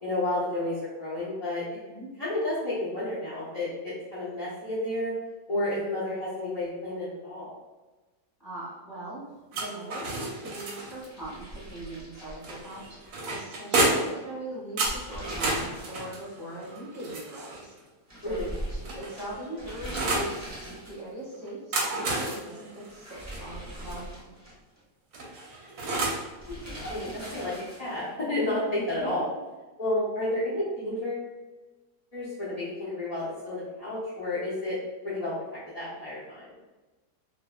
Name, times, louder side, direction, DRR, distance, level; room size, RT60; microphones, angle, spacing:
voice 1, 0.0-1.6 2.2-5.1 5.5-7.5 13.8-14.1 18.2-18.5 26.5-26.6 26.9-27.5 27.8-29.2 29.8-31.3 32.1-34.8 35.0-36.5, left 1 dB, 65° left, -11 dB, 0.3 m, -31 dB
voice 2, 8.4-9.2 9.5-13.0 13.3-17.7 18.2-18.4 18.7-24.2 28.7-29.2, right 1 dB, 20° left, -10 dB, 0.9 m, -40 dB
sound 1, 9.5-11.1 12.4-14.2 14.8-17.7 18.5-20.3 21.5-24.0 25.1-26.3, right 2 dB, 70° right, 1.0 m, -31 dB
sound 2, 10.8-13.3 13.6-13.7 14.7-16.1 16.4-16.5 18.1-21.2 22.8-24.8 26.4-28.1, right 1 dB, 15° right, 0.5 m, -41 dB
2.7 x 2.5 x 2.2 m, 1.2 s
omnidirectional pair, 1.9 m